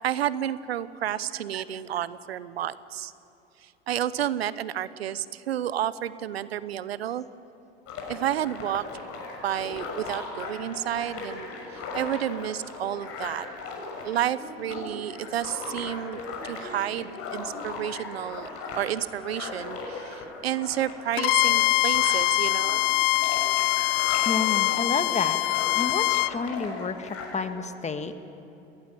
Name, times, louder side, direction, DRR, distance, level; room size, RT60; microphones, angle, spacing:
voice 1, 0.0-3.1 3.9-7.3 8.1-8.8 9.4-11.5 11.9-13.5 14.0-16.2 16.4-22.8, right 11 dB, 90° right, 17 dB, 0.8 m, -30 dB
sound 1, 7.9-27.5, left 3 dB, 50° left, 6.7 m, -38 dB
Bowed string instrument, 21.2-26.3, left 21 dB, 65° left, 0.6 m, -23 dB
voice 2, 24.2-25.4 25.7-28.2, left 4 dB, 20° left, 9 dB, 1.7 m, -30 dB
22.0 x 18.0 x 9.1 m, 2.8 s
hypercardioid pair, 85°, 30 cm